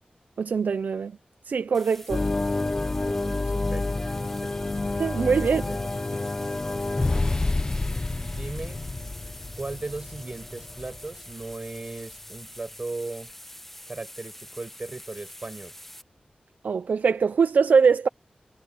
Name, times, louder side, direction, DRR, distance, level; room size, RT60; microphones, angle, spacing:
voice 1, 0.4-1.2 1.5-2.3 5.0-5.6 16.6-18.1, right 5 dB, 80° right, 0.6 m, -22 dB
sound 1, 1.7-16.0, left 1 dB, 10° left, 1.4 m, -46 dB
sound 2, 2.1-11.5, left 2 dB, 30° left, 0.8 m, -29 dB
voice 2, 3.1-4.5 5.4-5.9 8.3-8.8 9.6-13.3 13.9-15.8, right 3 dB, 35° right, 5.4 m, -37 dB
wide cardioid pair, 120°, 3 cm